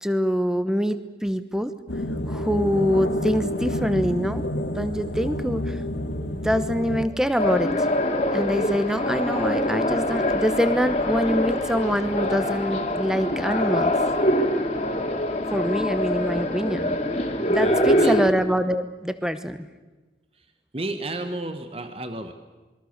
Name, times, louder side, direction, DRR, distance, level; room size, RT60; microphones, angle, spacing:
voice 1, 0.0-1.7 2.3-4.5 4.8-7.9 8.3-13.9 15.5-17.0 17.5-19.7, equal, 5° right, 11 dB, 1.0 m, -25 dB
sound 1, 1.9-7.1, left 1 dB, 70° left, 2.1 m, -29 dB
sound 2, 7.4-18.3, left 1 dB, 35° left, 2.4 m, -24 dB
voice 2, 17.5-18.2 20.4-20.5 20.7-22.3, right 2 dB, 30° right, 7 dB, 1.2 m, -32 dB
27.5 x 22.0 x 6.7 m, 1.2 s
head